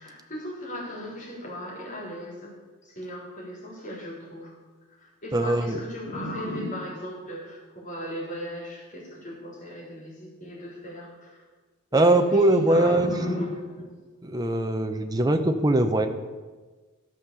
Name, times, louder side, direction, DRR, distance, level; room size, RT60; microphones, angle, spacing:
voice 1, 0.0-2.5 2.8-4.5 5.0-11.4 11.9-13.9, left 1 dB, 35° left, -4 dB, 3.7 m, -36 dB
voice 2, 5.3-5.8 11.9-13.1 14.2-16.1, right 2 dB, 15° right, 6 dB, 0.6 m, -21 dB
13.5 x 5.5 x 6.8 m, 1.3 s
head